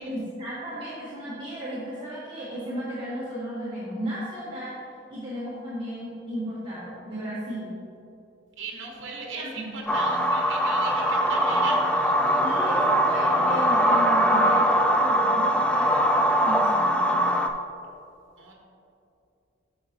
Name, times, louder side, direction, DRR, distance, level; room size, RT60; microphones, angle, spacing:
voice 1, 0.0-4.8 5.1-7.7 9.4-9.7 12.4-17.0, equal, 25° right, -9 dB, 1.2 m, -34 dB
voice 2, 8.6-12.4 18.4-18.5, right 4 dB, 65° right, 0 dB, 1.1 m, -38 dB
sound 1, 9.9-17.5, equal, 5° left, 0.3 m, -22 dB
9.4 x 6.1 x 2.8 m, 2.6 s
head